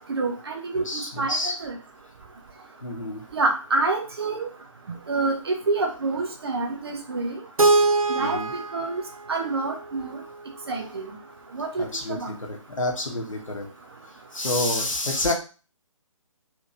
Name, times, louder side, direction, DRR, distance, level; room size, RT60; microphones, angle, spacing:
voice 1, 0.1-1.8 3.3-4.5 5.1-7.3 8.1-9.0 9.3-10.2 10.7-11.1 11.5-11.8 12.1-12.4, right 3 dB, 50° right, 3 dB, 0.9 m, -27 dB
voice 2, 0.8-1.5 2.8-3.2 8.2-8.5 11.8-12.2 12.5-13.7 14.3-15.3, left 2 dB, 70° left, 2 dB, 1.1 m, -28 dB
Keyboard (musical), 7.6-10.5, right 3 dB, 90° right, 0.5 m, -24 dB
4.2 x 2.9 x 2.5 m, 0.34 s
figure-of-eight pair, 140°, 17 cm